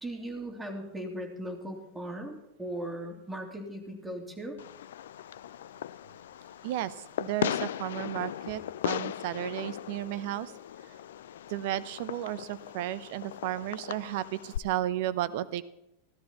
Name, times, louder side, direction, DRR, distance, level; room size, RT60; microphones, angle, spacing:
voice 1, 0.0-4.6, right 1 dB, 10° right, 1 dB, 3.1 m, -38 dB
Fireworks, 4.6-14.6, left 11 dB, 65° left, 0.4 m, -38 dB
voice 2, 6.6-10.5 11.5-15.6, right 13 dB, 55° right, 15 dB, 0.8 m, -33 dB
16.0 x 13.0 x 4.3 m, 0.86 s
figure-of-eight pair, 90°, 0 cm